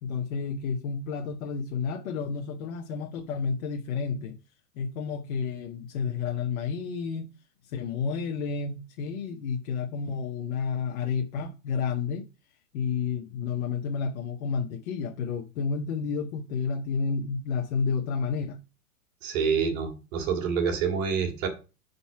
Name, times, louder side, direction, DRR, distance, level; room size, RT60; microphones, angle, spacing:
voice 1, 0.0-4.4 4.8-7.3 7.7-12.2 12.7-18.6, left 5 dB, 60° left, 1.1 m, -31 dB
voice 2, 19.2-21.5, right 6 dB, 60° right, 2.2 m, -27 dB
5.6 x 4.1 x 5.7 m
hypercardioid pair, 130°, 45 cm